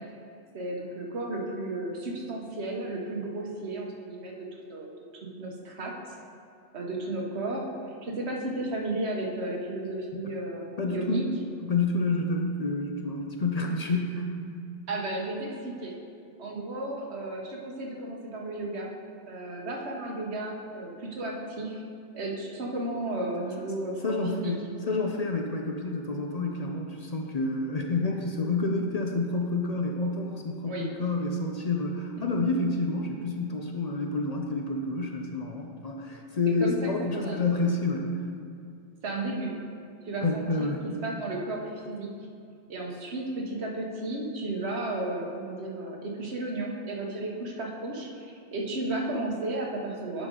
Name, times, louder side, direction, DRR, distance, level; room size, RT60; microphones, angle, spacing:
voice 1, 0.5-6.2 6.7-7.7 8.0-11.3 14.9-16.0 16.4-18.9 19.3-21.8 22.1-24.5 30.6-30.9 36.6-37.4 39.0-39.6 40.0-42.1 42.7-50.3, right 2 dB, 85° right, -1 dB, 1.3 m, -33 dB
voice 2, 10.8-11.2 11.6-14.3 24.0-38.3 40.2-40.8, left 3 dB, 45° left, 1 dB, 0.6 m, -29 dB
11.0 x 5.1 x 3.8 m, 2.4 s
omnidirectional pair, 1.1 m